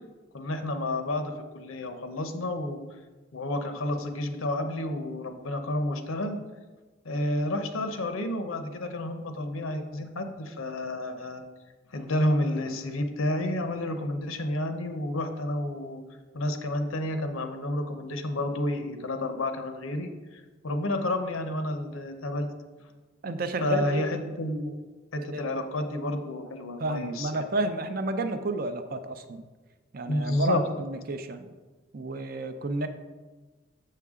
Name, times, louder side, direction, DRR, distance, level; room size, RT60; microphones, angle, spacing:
voice 1, 0.3-2.8 3.3-6.4 7.0-11.4 11.9-16.0 16.3-22.5 23.6-24.7 25.1-27.5 30.1-30.6, left 1 dB, 85° left, 7 dB, 0.8 m, -30 dB
voice 2, 23.2-24.0 25.3-25.6 26.8-29.4 29.9-31.5 31.9-32.9, right 2 dB, 45° right, 9 dB, 0.5 m, -31 dB
6.7 x 6.6 x 3.6 m, 1.3 s
head